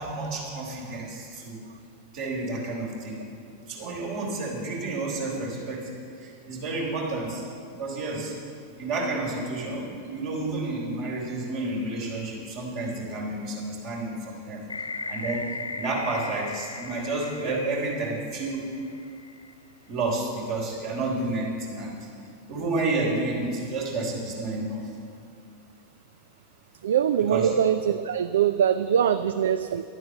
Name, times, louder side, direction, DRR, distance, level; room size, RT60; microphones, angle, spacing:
voice 1, 0.0-1.6 2.1-3.2 3.7-5.9 6.2-7.4 7.8-8.3 8.8-14.6 15.1-18.7 19.9-22.1 22.5-24.9 27.2-27.5 28.7-28.8, right 2 dB, 45° right, -2 dB, 3.4 m, -30 dB
sound 1, 14.7-19.5, left 3 dB, 80° left, 0.5 m, -38 dB
voice 2, 26.8-27.8 28.0-29.8, right 9 dB, 60° right, 12 dB, 0.3 m, -23 dB
11.5 x 9.3 x 7.3 m, 2.4 s
figure-of-eight pair, 90°, 0 cm